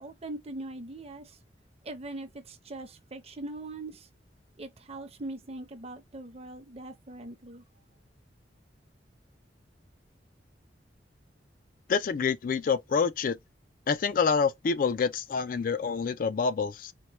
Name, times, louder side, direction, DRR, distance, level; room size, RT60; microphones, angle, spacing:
voice 1, 0.0-1.4 1.8-4.1 4.6-7.6, right 2 dB, 35° right, 0.7 m, -41 dB
voice 2, 11.9-13.4 13.9-16.9, left 5 dB, 50° left, 0.3 m, -27 dB
4.5 x 2.2 x 2.9 m
head